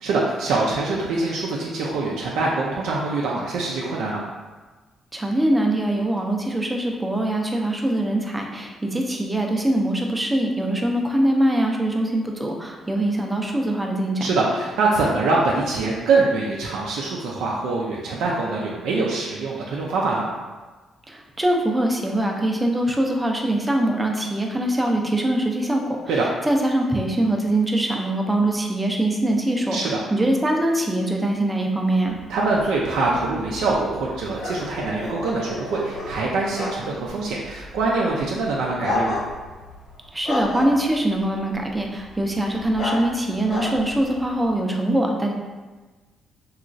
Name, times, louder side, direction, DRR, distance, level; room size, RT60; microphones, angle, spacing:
voice 1, 0.0-4.2 14.2-20.3 26.1-26.3 29.7-30.0 32.3-39.2, right 3 dB, 85° right, -4 dB, 0.3 m, -24 dB
voice 2, 5.1-14.3 21.1-26.0 26.5-29.8 30.1-32.2 40.1-45.3, right 1 dB, 15° right, 1 dB, 0.4 m, -23 dB
sound 1, 32.1-44.6, left 2 dB, 70° left, 1.1 m, -33 dB
2.9 x 2.3 x 2.5 m, 1.3 s
cardioid pair, 90°, 0 cm